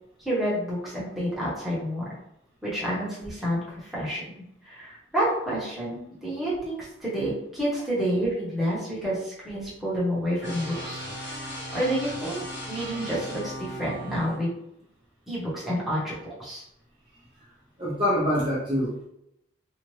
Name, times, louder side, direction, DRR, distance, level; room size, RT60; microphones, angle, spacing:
voice 1, 0.2-2.1 2.6-4.2 4.6-14.5 15.3-16.6, equal, ahead, -9 dB, 1.0 m, -29 dB
sound 1, 10.4-14.4, equal, 55° left, 1.4 m, -37 dB
voice 2, 17.8-19.1, equal, 25° right, -8 dB, 0.6 m, -25 dB
2.7 x 2.4 x 3.1 m, 0.80 s
head